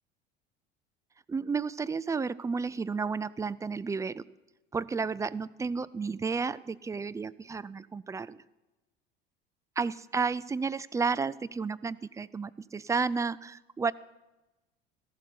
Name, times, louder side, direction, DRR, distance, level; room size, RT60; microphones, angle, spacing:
voice 1, 1.3-4.3 4.7-8.4 9.8-13.9, right 5 dB, 10° right, 16 dB, 0.3 m, -32 dB
14.0 x 11.5 x 4.3 m, 1.0 s
figure-of-eight pair, 65°, 29 cm